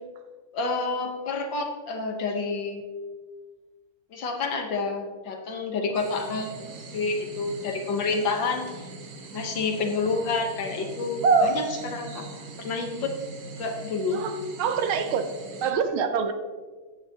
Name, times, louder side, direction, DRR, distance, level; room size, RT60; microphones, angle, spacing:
voice 1, 0.5-2.8 4.1-6.5 6.9-8.7 9.3-12.3 12.6-13.1 13.6-14.2, left 4 dB, 60° left, 4 dB, 1.7 m, -29 dB
sound 1, 5.9-15.7, right 4 dB, 50° right, 1.5 m, -32 dB
voice 2, 14.1-15.3 15.6-16.3, right 7 dB, 75° right, 8 dB, 1.5 m, -26 dB
14.5 x 9.4 x 2.8 m, 1.4 s
omnidirectional pair, 2.4 m